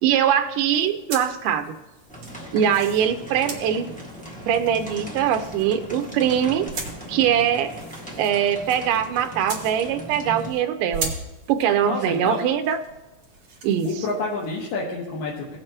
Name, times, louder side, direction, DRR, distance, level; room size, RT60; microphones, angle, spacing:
voice 1, 0.0-1.8 2.5-3.9 4.5-6.7 7.1-7.7 8.2-11.1 11.5-12.8 13.6-13.9, right 9 dB, 85° right, 8 dB, 2.2 m, -22 dB
sound 1, 0.7-10.6 10.9-14.6, right 4 dB, 45° right, 3.0 m, -39 dB
sound 2, 2.1-10.5, equal, 5° left, 0.7 m, -38 dB
voice 2, 11.8-12.4 13.8-15.6, left 3 dB, 85° left, -4 dB, 3.1 m, -28 dB
18.0 x 7.8 x 3.0 m, 1.1 s
omnidirectional pair, 3.8 m